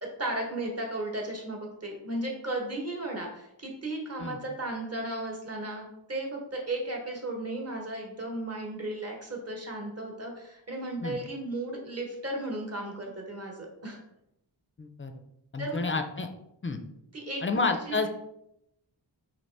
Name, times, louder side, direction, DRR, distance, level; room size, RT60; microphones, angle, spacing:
voice 1, 0.0-14.0 15.6-15.8 17.1-18.0, right 1 dB, 30° right, 0 dB, 1.1 m, -35 dB
voice 2, 14.8-15.1 15.5-16.3 16.6-16.8 17.4-18.1, left 3 dB, 30° left, 6 dB, 0.4 m, -29 dB
4.1 x 3.0 x 3.3 m, 0.80 s
wide cardioid pair, 65°, 47 cm